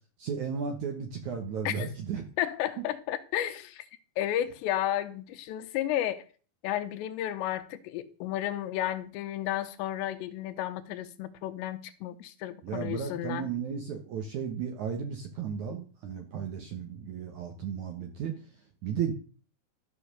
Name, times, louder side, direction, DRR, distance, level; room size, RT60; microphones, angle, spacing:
voice 1, 0.2-2.2 2.8-2.9 12.6-18.4 18.8-19.1, right 7 dB, 70° right, 1.9 m, -34 dB
voice 2, 2.4-3.8 4.2-6.2 6.6-13.5, left 12 dB, 90° left, 3.1 m, -32 dB
13.5 x 5.5 x 6.5 m
omnidirectional pair, 4.9 m